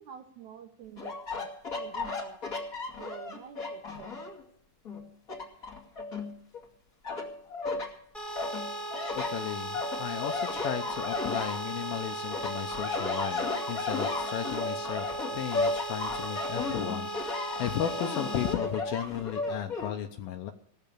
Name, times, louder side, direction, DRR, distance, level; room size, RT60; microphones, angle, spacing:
voice 1, 0.0-2.4 3.0-4.3, right 9 dB, 70° right, 4 dB, 1.9 m, -48 dB
sound 1, 1.0-4.4 4.9-6.6 7.0-7.9 8.4-12.0 12.3-19.9, left 3 dB, 30° left, 2.1 m, -34 dB
sound 2, 8.1-18.5, right 1 dB, ahead, 0.8 m, -37 dB
voice 2, 9.1-20.5, left 10 dB, 80° left, 5 dB, 2.5 m, -35 dB
17.5 x 6.9 x 8.3 m, 0.71 s
omnidirectional pair, 4.2 m